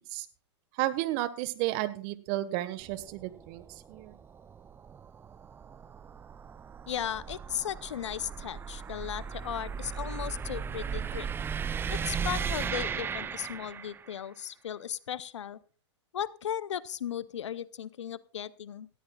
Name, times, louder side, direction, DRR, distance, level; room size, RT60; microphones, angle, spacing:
voice 1, 0.8-4.2, right 16 dB, 45° right, 13 dB, 1.4 m, -32 dB
sound 1, 2.8-14.2, right 6 dB, 15° right, 0.5 m, -37 dB
voice 2, 6.9-11.3 11.9-15.6 16.1-18.9, left 9 dB, 75° left, 18 dB, 0.7 m, -36 dB
18.5 x 14.0 x 2.4 m, 0.38 s
hypercardioid pair, 110°, 15 cm